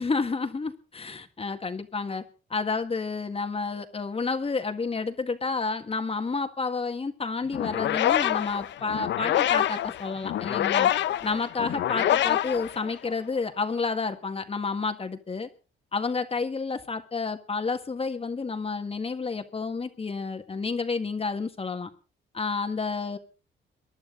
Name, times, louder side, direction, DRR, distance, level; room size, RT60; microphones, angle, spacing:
voice 1, 0.0-2.2 2.5-10.9 11.2-15.5 15.9-21.9 22.3-23.2, left 4 dB, 30° left, 7 dB, 1.8 m, -30 dB
sound 1, 7.5-13.4, left 12 dB, 65° left, 0.7 m, -26 dB
23.0 x 11.5 x 3.9 m, 0.36 s
cardioid pair, 90°, 20 cm